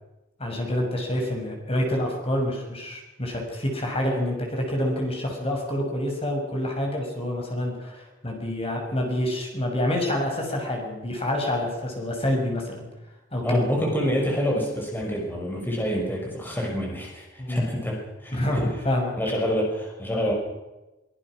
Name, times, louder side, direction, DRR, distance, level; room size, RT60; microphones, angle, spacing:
voice 1, 0.4-12.9 13.3-13.6 17.4-17.6 18.3-19.1, left 1 dB, 30° left, 1 dB, 6.3 m, -27 dB
voice 2, 13.4-18.7 19.2-20.3, equal, 10° left, -1 dB, 5.9 m, -27 dB
24.0 x 22.5 x 6.3 m, 1.0 s
head